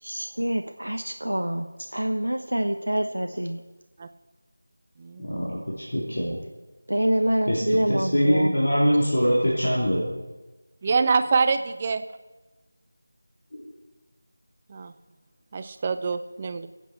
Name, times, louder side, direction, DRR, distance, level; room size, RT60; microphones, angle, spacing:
voice 1, 0.0-3.6 6.9-8.6, right 1 dB, 80° right, 6 dB, 0.9 m, -26 dB
voice 2, 5.2-6.4 7.5-10.2 13.5-13.6, equal, 55° left, -6 dB, 3.2 m, -23 dB
voice 3, 10.8-12.0 14.7-14.9 15.5-16.7, right 4 dB, 25° right, 10 dB, 0.6 m, -25 dB
24.0 x 8.3 x 4.4 m, 1.2 s
figure-of-eight pair, 165°, 0 cm